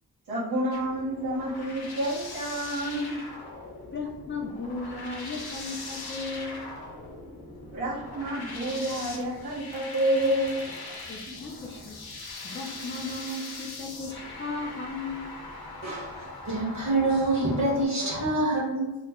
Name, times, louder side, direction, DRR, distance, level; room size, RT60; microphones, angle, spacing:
voice 1, 0.3-3.2 7.6-11.4, right 1 dB, 75° right, -6 dB, 1.2 m, -29 dB
sound 1, 0.7-17.8, left 3 dB, 85° left, 0.8 m, -41 dB
voice 2, 3.9-6.6 11.1-12.0 12.4-15.3, left 3 dB, 30° left, -1 dB, 0.4 m, -36 dB
voice 3, 15.8-18.9, right 2 dB, 50° right, -6 dB, 1.3 m, -26 dB
3.0 x 2.1 x 3.5 m, 1.0 s
wide cardioid pair, 170°, 37 cm